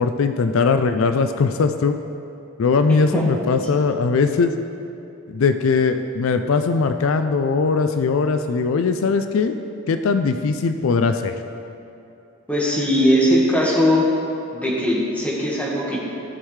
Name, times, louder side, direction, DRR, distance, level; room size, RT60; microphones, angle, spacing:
voice 1, 0.0-2.0 2.6-4.5 5.3-9.5 9.9-11.4, left 4 dB, 75° left, 8 dB, 0.4 m, -20 dB
voice 2, 12.5-14.0 14.5-16.0, equal, 5° left, -5 dB, 1.6 m, -19 dB
15.5 x 6.3 x 3.3 m, 2.8 s
head